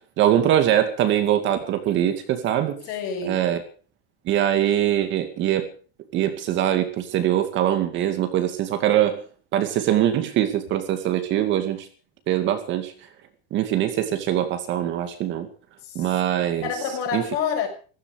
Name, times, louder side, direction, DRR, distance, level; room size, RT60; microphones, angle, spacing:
voice 1, 0.2-2.8 3.2-3.6 4.3-5.7 6.1-9.2 9.5-11.9 12.3-12.9 13.5-15.5 16.0-16.7 17.1-17.2, right 11 dB, 35° right, 2.3 m, -22 dB
voice 2, 2.9-3.4 15.8-16.2 16.6-17.7, left 7 dB, 45° left, 6.5 m, -28 dB
15.5 x 14.5 x 6.4 m
cardioid pair, 175°, 31 cm